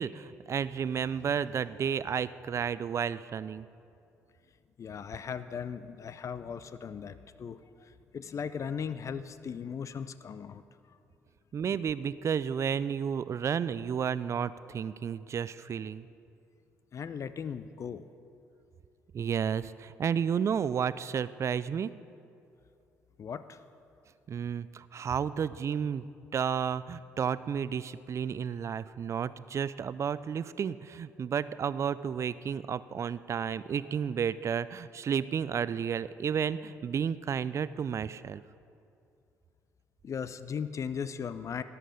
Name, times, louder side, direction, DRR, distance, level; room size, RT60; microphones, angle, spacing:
voice 1, 0.0-3.7 11.5-16.1 19.1-21.9 24.3-26.1 26.3-38.4, right 7 dB, 40° right, 17 dB, 0.4 m, -32 dB
voice 2, 4.8-10.6 16.9-18.1 23.2-23.6 40.0-41.6, left 7 dB, 40° left, 13 dB, 0.6 m, -38 dB
13.5 x 11.0 x 5.2 m, 2.6 s
figure-of-eight pair, 45°, 8 cm